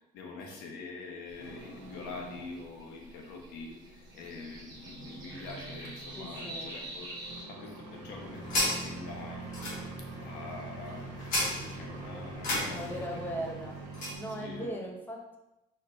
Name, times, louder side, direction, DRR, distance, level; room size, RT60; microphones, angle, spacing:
voice 1, 0.0-7.1 7.5-9.5 10.1-11.1 11.7-13.4 14.4-14.7, left 3 dB, 70° left, 1 dB, 0.9 m, -45 dB
sound 1, 1.3-7.4, right 1 dB, 20° right, 0.8 m, -46 dB
sound 2, 1.4-14.7, right 4 dB, 75° right, 1.0 m, -46 dB
voice 2, 6.2-6.8 12.6-13.8 14.2-15.4, equal, 10° left, 1 dB, 0.5 m, -38 dB
sound 3, 7.6-14.2, left 1 dB, 45° left, 1.5 m, -36 dB
4.3 x 3.1 x 2.6 m, 0.92 s
cardioid pair, 165°, 18 cm